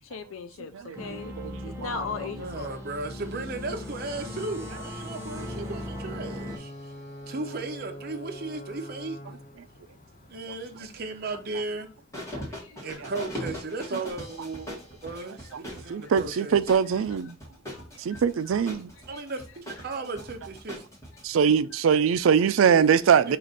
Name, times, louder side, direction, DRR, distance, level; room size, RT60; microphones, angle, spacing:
voice 1, 0.0-2.8 9.8-9.9 12.4-13.0 13.3-13.4 15.5-16.1 17.7-18.2 18.5-18.6 19.1-19.2 19.7-19.8 21.1-21.2, left 6 dB, 80° left, 0.4 m, -40 dB
voice 2, 0.7-2.0 9.3-9.4 12.3-12.4 13.0-13.1 15.9-17.4 18.0-18.9 21.2-23.4, right 7 dB, 80° right, 0.4 m, -23 dB
sound 1, 0.9-6.6, left 1 dB, 15° right, 0.8 m, -38 dB
voice 3, 2.4-6.9 7.3-9.2 10.3-11.9 12.8-16.6 19.1-20.8 22.6-23.4, right 3 dB, 50° right, 0.7 m, -36 dB
Ocean / Boat Water vehicle / Alarm, 5.3-12.9, left 1 dB, 40° left, 0.7 m, -45 dB
sound 2, 6.5-7.9 12.1-21.2, left 1 dB, 15° left, 1.1 m, -41 dB
4.9 x 2.5 x 3.9 m
head